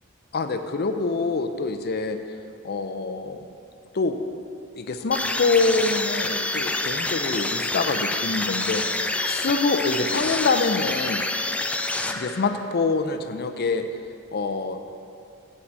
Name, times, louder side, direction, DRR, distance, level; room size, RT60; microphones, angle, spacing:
voice 1, 0.3-2.2 2.6-3.4 3.9-4.2 4.7-11.2 12.1-13.8 14.3-14.8, left 4 dB, 50° left, 8 dB, 0.6 m, -25 dB
sound 1, 5.1-12.6, left 2 dB, 5° left, 0.3 m, -27 dB
Wind instrument woodwind instrument, 8.6-13.2, left 3 dB, 10° right, 2.7 m, -46 dB
7.8 x 5.9 x 7.9 m, 2.4 s
head